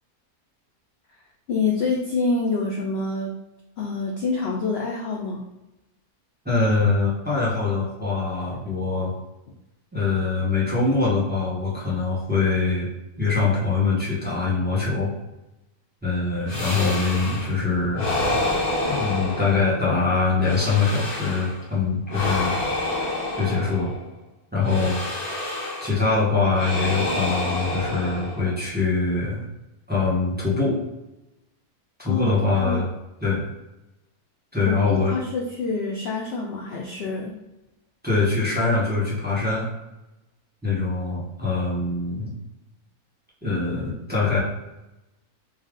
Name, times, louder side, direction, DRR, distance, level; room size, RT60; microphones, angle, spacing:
voice 1, 1.5-3.3 3.8-5.4 32.0-32.3 32.6-32.8 34.6-37.3, left 4 dB, 65° left, -1 dB, 0.6 m, -26 dB
voice 2, 6.4-9.1 9.9-12.9 13.2-15.1 16.0-18.2 18.9-22.5 23.4-23.9 24.5-25.0 25.8-29.4 29.9-30.8 32.0-32.9 33.2-33.5 34.5-35.1 38.0-39.7 40.6-42.3 43.4-44.4, left 4 dB, 5° right, -7 dB, 1.0 m, -23 dB
sound 1, 16.5-17.6 17.9-19.9 20.4-21.6 22.1-24.1 24.6-26.0 26.5-28.6, left 2 dB, 80° left, 1.6 m, -28 dB
3.3 x 2.7 x 3.7 m, 0.96 s
omnidirectional pair, 1.6 m